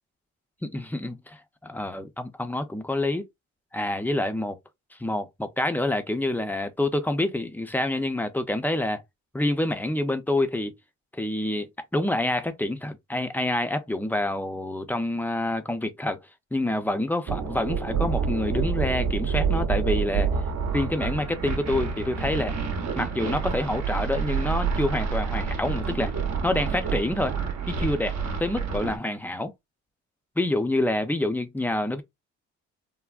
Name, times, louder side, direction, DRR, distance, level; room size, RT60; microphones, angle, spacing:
voice 1, 0.6-3.3 3.7-4.6 5.0-9.0 9.3-10.7 11.1-11.7 11.9-16.2 16.5-20.3 20.7-22.5 23.0-26.1 26.4-27.4 27.7-29.5 30.4-32.0, left 1 dB, 5° left, 0.4 m, -27 dB
sound 1, 17.3-29.0, right 6 dB, 60° right, 0.8 m, -28 dB
3.4 x 2.0 x 2.4 m
cardioid pair, 90°, 30 cm